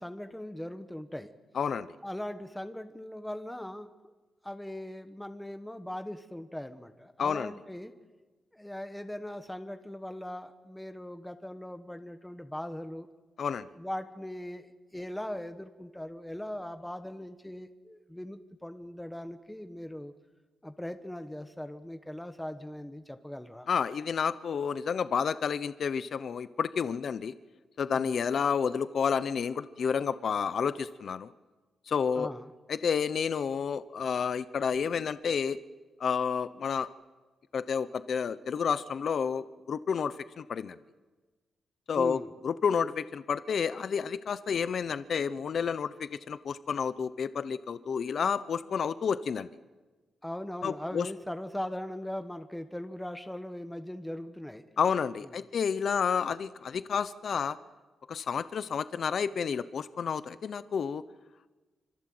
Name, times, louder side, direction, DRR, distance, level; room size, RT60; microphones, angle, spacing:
voice 1, 0.0-1.3 2.0-3.9 4.4-7.9 8.5-13.1 13.7-20.1 20.6-23.7 27.9-28.1 32.2-32.5 42.0-42.3 50.2-54.7 55.2-55.4, left 1 dB, 5° left, 7 dB, 1.1 m, -40 dB
voice 2, 1.6-1.9 7.2-7.5 13.4-13.7 23.7-27.3 27.8-31.3 31.9-32.3 32.7-35.6 36.0-36.9 37.5-40.8 41.9-49.5 50.6-51.1 54.8-57.6 58.1-61.0, left 6 dB, 55° left, 13 dB, 0.8 m, -30 dB
26.5 x 25.5 x 7.8 m, 1.3 s
wide cardioid pair, 140°, 0 cm